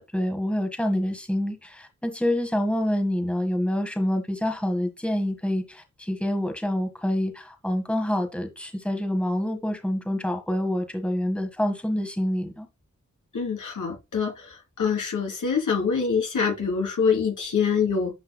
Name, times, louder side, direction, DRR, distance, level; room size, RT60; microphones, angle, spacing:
voice 1, 0.0-12.7, left 1 dB, 5° left, 1.5 m, -27 dB
voice 2, 13.3-14.3 14.8-18.1, left 6 dB, 90° left, 3.1 m, -25 dB
10.0 x 5.5 x 2.2 m
cardioid pair, 70°, 30 cm